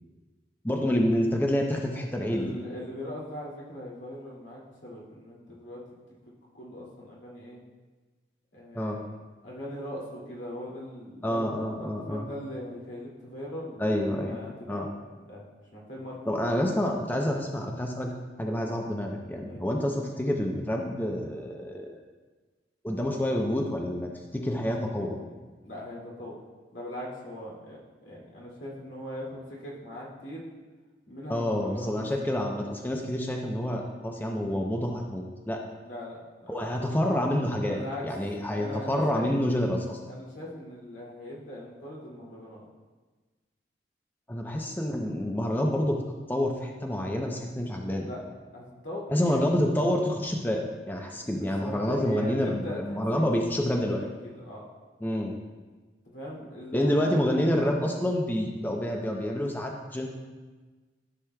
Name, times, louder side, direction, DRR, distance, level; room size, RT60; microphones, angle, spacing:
voice 1, 0.6-2.5 8.7-9.0 11.2-12.3 13.8-14.4 14.7-14.9 16.3-18.1 18.4-22.0 22.8-25.2 31.3-35.6 36.5-37.8 38.0-40.0 44.3-46.0 46.3-48.1 49.1-54.0 55.0-55.3 56.7-60.1, left 1 dB, 10° left, 1 dB, 0.6 m, -28 dB
voice 2, 2.3-5.8 6.5-7.6 8.5-8.9 9.4-14.9 15.2-15.4 15.7-16.2 16.5-16.6 19.5-19.6 25.6-26.4 26.7-30.4 31.1-32.3 35.8-36.6 37.6-38.1 38.5-39.4 40.1-42.6 47.8-48.2 48.5-49.4 51.3-53.2 53.8-54.7 56.0-57.1, equal, 90° left, -5 dB, 2.3 m, -40 dB
13.5 x 6.2 x 2.2 m, 1.3 s
head